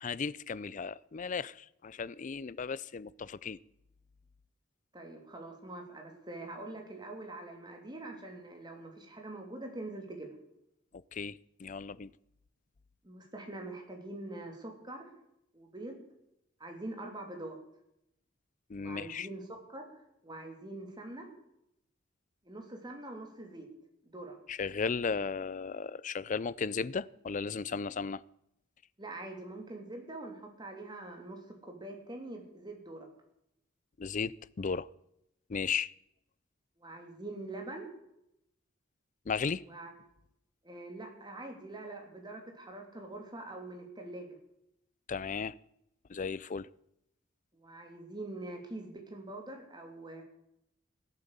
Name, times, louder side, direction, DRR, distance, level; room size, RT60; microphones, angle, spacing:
voice 1, 0.0-3.6 11.1-12.1 18.7-19.3 24.5-28.2 34.0-34.9 35.5-35.9 39.3-39.6 45.1-45.6 46.1-46.7, left 5 dB, 40° left, 0.4 m, -35 dB
voice 2, 4.9-10.3 13.0-15.1 15.5-16.0 16.6-17.6 18.7-19.9 20.2-21.3 22.4-23.7 24.0-24.4 29.0-33.1 36.8-37.9 39.7-39.9 40.6-44.4 47.5-50.2, right 2 dB, 20° right, 3.0 m, -44 dB
16.0 x 9.1 x 8.2 m
head